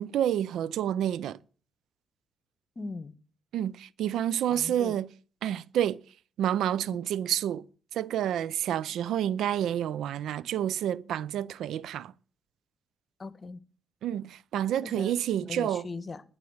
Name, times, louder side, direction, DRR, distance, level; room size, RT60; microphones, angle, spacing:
voice 1, 0.0-1.4 3.5-5.1 5.4-6.0 6.4-7.6 7.9-12.1 14.0-15.9, right 10 dB, 75° right, 0.5 m, -29 dB
voice 2, 2.8-3.1 4.5-5.0 6.9-7.0 13.2-13.6 14.8-15.1 15.5-16.2, left 3 dB, 35° left, 1.2 m, -39 dB
10.5 x 8.8 x 7.9 m
cardioid pair, 90°, 0 cm